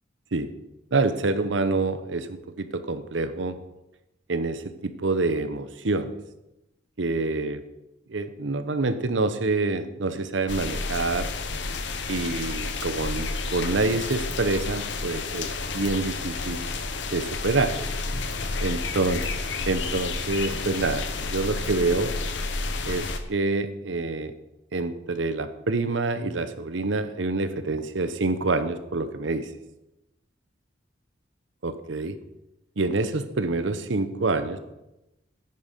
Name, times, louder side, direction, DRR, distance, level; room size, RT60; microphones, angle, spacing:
voice 1, 0.9-3.6 4.3-6.2 7.0-7.6 8.1-11.3 12.1-16.7 17.1-17.8 18.6-19.2 19.7-22.1 22.8-24.3 24.7-29.5 31.6-32.2 32.8-34.6, right 3 dB, 85° right, 11 dB, 0.9 m, -27 dB
sound 1, 10.5-23.2, left 3 dB, 70° left, 0.9 m, -31 dB
9.5 x 9.4 x 5.2 m, 0.94 s
head